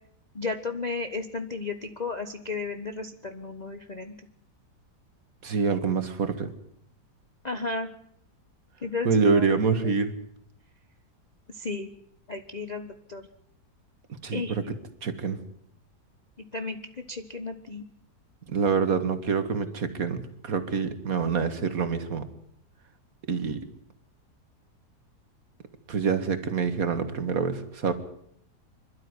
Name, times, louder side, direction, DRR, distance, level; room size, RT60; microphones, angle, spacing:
voice 1, 0.3-4.2 7.4-7.9 8.8-9.9 11.5-11.9 12.3-13.3 14.3-14.7 16.5-17.9, left 3 dB, 30° left, 7 dB, 1.1 m, -34 dB
voice 2, 5.4-6.5 9.0-10.1 14.2-14.6 15.0-15.4 18.5-22.3 23.3-23.7 25.9-27.9, right 5 dB, 55° right, 10 dB, 2.2 m, -26 dB
26.0 x 12.5 x 9.7 m, 0.72 s
omnidirectional pair, 1.8 m